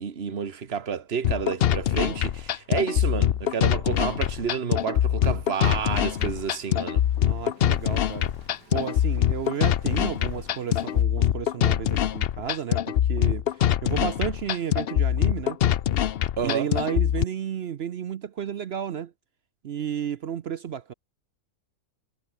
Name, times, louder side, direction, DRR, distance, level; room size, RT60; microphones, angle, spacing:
voice 1, 0.0-7.0 16.4-16.7, right 6 dB, 40° right, 1.7 m, -30 dB
tropical waste, 1.2-17.2, left 10 dB, 75° left, 0.5 m, -24 dB
Wind, 5.7-11.0, right 2 dB, 80° right, 7.3 m, -53 dB
voice 2, 7.2-8.3 8.7-15.6 16.4-19.1 19.6-20.9, right 8 dB, 60° right, 0.6 m, -32 dB
omnidirectional pair, 1.7 m